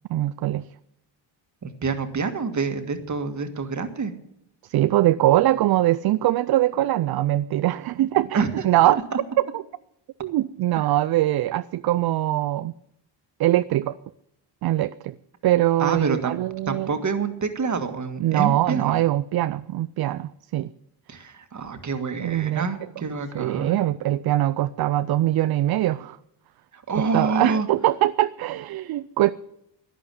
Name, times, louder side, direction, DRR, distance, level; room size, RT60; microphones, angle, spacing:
voice 1, 0.1-0.7 4.7-9.0 9.4-9.6 10.2-12.7 13.4-14.0 14.6-15.1 15.4-16.9 18.2-20.7 22.2-22.7 23.3-26.2 27.1-29.3, right 14 dB, 55° right, 0.5 m, -22 dB
voice 2, 1.6-4.1 8.3-8.5 10.8-10.9 15.8-16.4 16.7-19.0 21.1-23.8 26.7-27.7, right 4 dB, 40° right, 1.8 m, -27 dB
11.0 x 10.5 x 7.7 m
cardioid pair, 75°, 47 cm